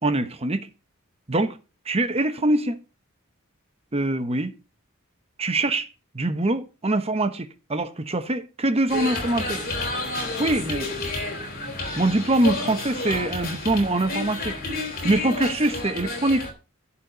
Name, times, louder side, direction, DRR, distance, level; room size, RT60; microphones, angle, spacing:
voice 1, 0.0-0.7 1.3-1.6 1.9-2.8 3.9-4.5 5.4-5.9 6.1-9.6 10.4-10.9 12.0-14.6 15.0-16.5, right 2 dB, 30° right, 1.1 m, -23 dB
sound 1, 8.9-16.5, left 2 dB, 45° left, 3.6 m, -30 dB
11.0 x 4.4 x 7.7 m
head